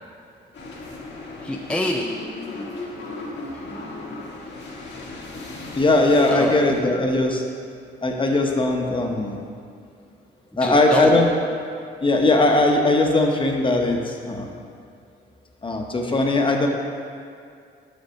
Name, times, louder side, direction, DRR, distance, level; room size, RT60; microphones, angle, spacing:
sound 1, 0.5-6.8, left 2 dB, 65° left, 1.4 m, -36 dB
voice 1, 1.4-2.3 3.2-4.3 6.3-6.6 10.6-11.1, left 1 dB, 5° left, 0 dB, 0.4 m, -28 dB
voice 2, 5.7-7.4 8.0-9.4 10.6-11.3 12.0-14.5 15.6-16.7, left 2 dB, 25° left, 2 dB, 0.9 m, -19 dB
6.0 x 5.2 x 5.7 m, 2.3 s
cardioid pair, 90°, 20 cm